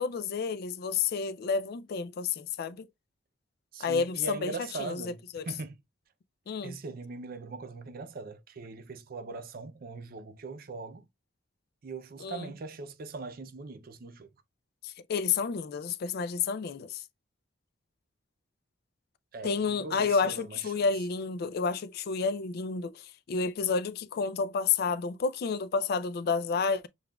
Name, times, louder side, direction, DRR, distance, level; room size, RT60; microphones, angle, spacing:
voice 1, 0.0-2.9 3.8-5.4 6.5-6.8 12.2-12.5 14.8-17.0 19.4-26.9, left 5 dB, 50° left, 0.3 m, -30 dB
voice 2, 3.7-5.8 6.6-11.1 11.8-14.3 19.3-20.8, right 3 dB, 45° right, 0.4 m, -41 dB
6.8 x 2.4 x 2.2 m
head